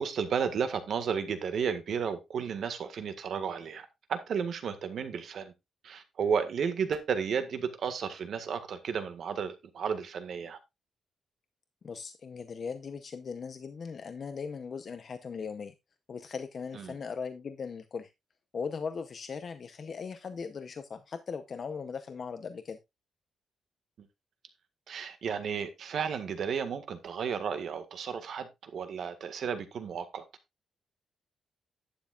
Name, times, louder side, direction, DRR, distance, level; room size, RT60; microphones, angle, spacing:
voice 1, 0.0-5.5 5.8-10.6 16.7-17.0 24.9-30.2, right 6 dB, 55° right, 1.7 m, -33 dB
voice 2, 11.8-15.7 16.1-18.1 18.5-22.8, left 5 dB, 40° left, 0.8 m, -39 dB
11.5 x 9.5 x 2.4 m
wide cardioid pair, 165°, 0 cm